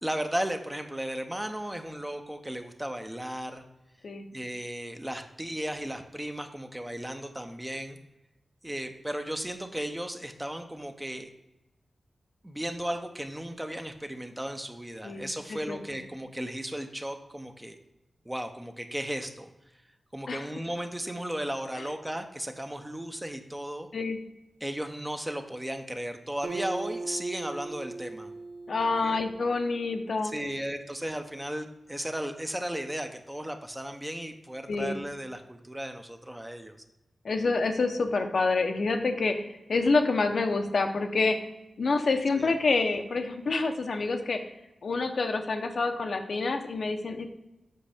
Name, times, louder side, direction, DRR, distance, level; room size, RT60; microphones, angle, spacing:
voice 1, 0.0-3.6 4.3-8.0 8.6-11.3 12.4-17.8 18.3-19.5 20.1-23.9 24.6-28.3 28.8-29.2 30.2-36.8 42.4-42.5, right 1 dB, 10° right, 6 dB, 0.6 m, -35 dB
voice 2, 15.0-15.8 20.3-20.5 23.9-24.2 28.7-30.3 34.7-34.9 37.2-41.4 41.8-44.4 44.8-47.3, left 3 dB, 65° left, 5 dB, 0.8 m, -27 dB
Acoustic guitar, 26.4-30.0, right 3 dB, 55° right, 0.4 m, -39 dB
7.6 x 5.4 x 3.4 m, 0.93 s
wide cardioid pair, 110°, 0 cm